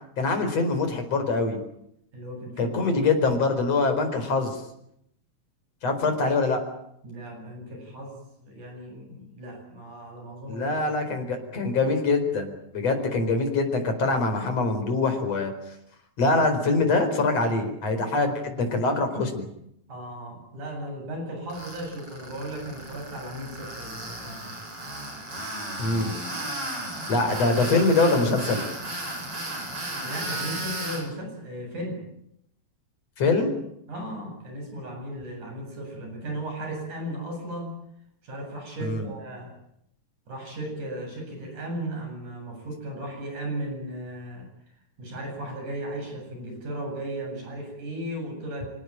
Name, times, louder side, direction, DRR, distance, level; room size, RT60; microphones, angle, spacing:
voice 1, 0.2-1.6 2.6-4.6 5.8-6.6 10.5-15.5 16.2-19.5 25.8-26.1 27.1-28.6 33.2-33.5 38.8-39.1, left 3 dB, 55° left, 7 dB, 5.7 m, -24 dB
voice 2, 2.1-2.8 7.0-10.7 11.1-11.4 12.9-13.0 18.6-18.7 19.9-24.6 29.8-32.0 33.9-37.8 38.2-39.5 40.3-44.5 45.0-48.8, right 1 dB, 75° right, 3 dB, 9.6 m, -36 dB
Tools, 21.5-31.0, right 1 dB, 45° right, 8.8 m, -35 dB
27.5 x 18.0 x 9.0 m, 0.76 s
omnidirectional pair, 3.5 m